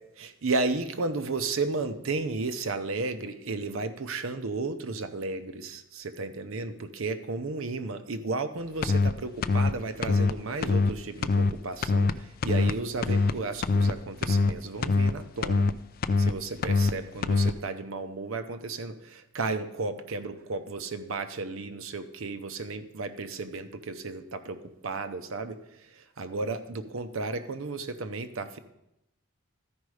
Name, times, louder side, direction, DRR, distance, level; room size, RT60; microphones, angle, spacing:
voice 1, 0.0-15.7 16.2-25.6 25.9-28.6, right 3 dB, 75° right, 9 dB, 0.7 m, -33 dB
sound 1, 8.8-9.1 9.4-9.7 10.0-10.3 10.6-10.9 11.2-11.5 11.8-12.1 12.4-12.7 13.0-13.3 13.6-13.9 14.2-14.5 14.8-15.1 15.4-15.7 16.0-16.3 16.6-16.9 17.2-17.5, left 3 dB, 45° left, 0.3 m, -23 dB
13.5 x 5.2 x 4.8 m, 0.85 s
head